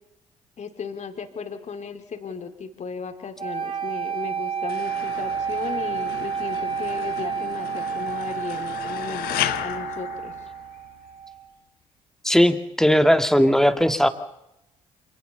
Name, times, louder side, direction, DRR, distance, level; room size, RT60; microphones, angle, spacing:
voice 1, 0.6-10.3, left 5 dB, 45° left, 7 dB, 3.3 m, -35 dB
sound 1, 3.4-11.5, right 7 dB, 35° right, 3.7 m, -30 dB
sound 2, 4.7-11.0, left 13 dB, 65° left, 1.2 m, -34 dB
voice 2, 12.2-14.1, equal, 5° left, 9 dB, 2.2 m, -18 dB
27.5 x 18.5 x 7.0 m, 0.83 s
figure-of-eight pair, 45°, 17 cm